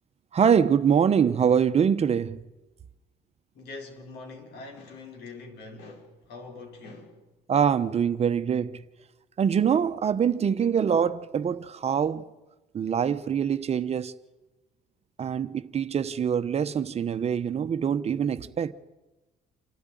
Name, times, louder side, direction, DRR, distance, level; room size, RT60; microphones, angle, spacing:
voice 1, 0.3-2.4 7.5-8.8 9.4-12.2 12.7-14.1 15.2-18.7, right 7 dB, 40° right, 0.9 m, -24 dB
voice 2, 3.5-7.2, left 3 dB, 80° left, 4.7 m, -43 dB
28.0 x 13.0 x 9.2 m
cardioid pair, 110°, 17 cm